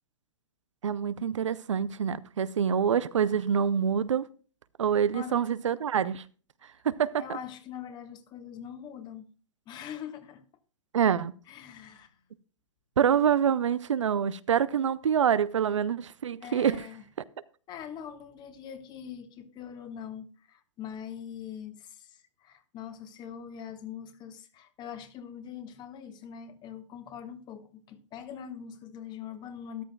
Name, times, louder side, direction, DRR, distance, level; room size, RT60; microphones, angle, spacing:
voice 1, 0.8-4.3 4.8-6.2 6.8-7.2 10.9-11.3 13.0-16.9, right 8 dB, 80° right, 0.6 m, -26 dB
voice 2, 5.1-5.4 7.2-9.3 9.7-10.4 11.5-12.2 16.4-17.0 17.7-29.8, left 8 dB, 30° left, 1.4 m, -43 dB
13.5 x 11.5 x 2.3 m
hypercardioid pair, 120°, 16 cm